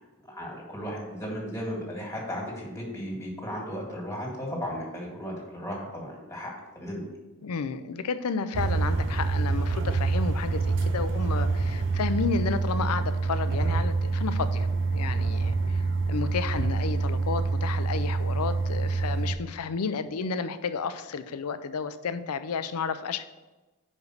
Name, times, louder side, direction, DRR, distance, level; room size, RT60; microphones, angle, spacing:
voice 1, 0.2-7.1, equal, 15° left, -2 dB, 2.0 m, -35 dB
voice 2, 7.4-23.3, left 5 dB, 85° left, 12 dB, 0.5 m, -32 dB
sound 1, 8.5-19.3, right 3 dB, 60° right, 0.6 m, -26 dB
5.4 x 4.9 x 6.4 m, 1.1 s
head